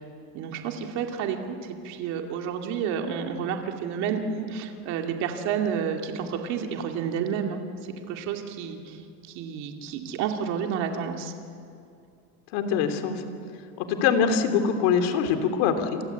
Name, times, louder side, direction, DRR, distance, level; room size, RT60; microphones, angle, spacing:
voice 1, 0.3-7.6 8.0-9.0 9.3-11.3, right 7 dB, 55° right, 3 dB, 2.4 m, -30 dB
voice 2, 12.5-13.2 13.8-16.0, left 7 dB, 75° left, 7 dB, 3.1 m, -23 dB
29.0 x 24.5 x 8.3 m, 2.5 s
cardioid pair, 175°, 33 cm